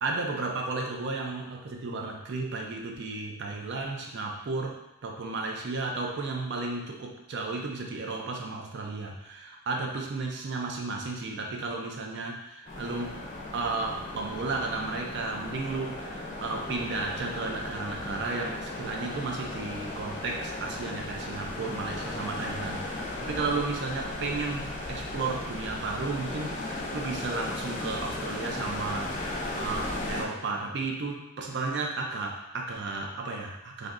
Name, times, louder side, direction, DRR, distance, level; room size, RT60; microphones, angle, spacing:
voice 1, 0.0-13.2 13.5-33.9, right 3 dB, 55° right, 1 dB, 0.4 m, -33 dB
sound 1, 12.6-30.2, left 2 dB, 35° left, 0.4 m, -36 dB
3.3 x 2.6 x 2.5 m, 0.88 s
head